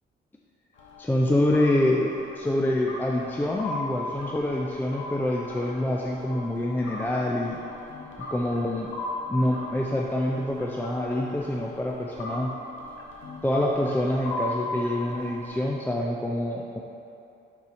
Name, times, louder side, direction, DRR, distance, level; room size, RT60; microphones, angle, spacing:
sound 1, 0.8-15.6, left 1 dB, 70° left, 1.0 m, -38 dB
voice 1, 1.0-7.6 8.3-8.9 9.3-12.5 13.4-16.8, left 1 dB, 10° left, -1 dB, 0.4 m, -26 dB
6.3 x 4.1 x 4.1 m, 2.6 s
cardioid pair, 90°, 20 cm